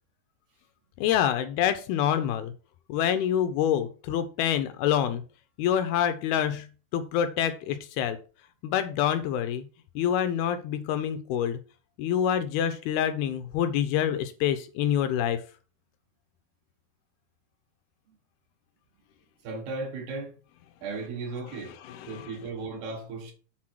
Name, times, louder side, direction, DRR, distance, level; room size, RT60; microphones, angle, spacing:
voice 1, 1.0-2.5 2.9-5.2 5.6-6.7 6.9-8.2 8.6-9.7 10.0-11.6 12.0-15.4 21.9-22.3, left 9 dB, 80° left, 2.3 m, -26 dB
voice 2, 19.4-20.3 20.8-21.8 22.1-23.3, right 3 dB, 70° right, 3.3 m, -35 dB
7.5 x 4.2 x 6.0 m
omnidirectional pair, 4.8 m